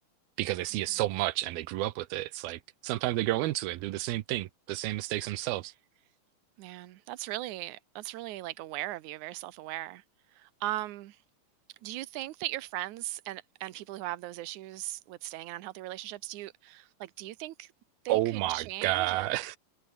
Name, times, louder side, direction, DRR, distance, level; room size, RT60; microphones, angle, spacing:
voice 1, 0.4-5.7 18.1-19.6, right 17 dB, 90° right, 2.8 m, -31 dB
voice 2, 6.6-10.0 10.4-11.2 11.8-17.7 18.1-19.4, right 16 dB, 70° right, 2.1 m, -38 dB
omnidirectional pair, 4.2 m